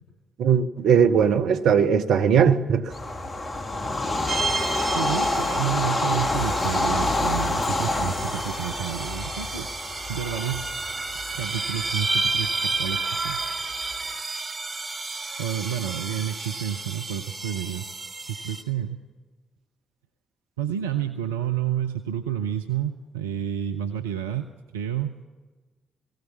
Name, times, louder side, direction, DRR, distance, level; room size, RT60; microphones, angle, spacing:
voice 1, 0.4-2.9, right 7 dB, 65° right, 1.0 m, -19 dB
Bird vocalization bird call bird song / Train, 2.9-14.1, left 2 dB, 30° left, 2.1 m, -28 dB
sound 1, 4.3-18.6, right 3 dB, 35° right, 3.1 m, -31 dB
voice 2, 4.9-9.7 10.1-10.8 11.4-13.5 15.4-17.9 18.3-19.0 20.6-24.5 24.7-25.2, right 10 dB, 85° right, 0.6 m, -30 dB
19.5 x 17.0 x 8.3 m
figure-of-eight pair, 40°, 0 cm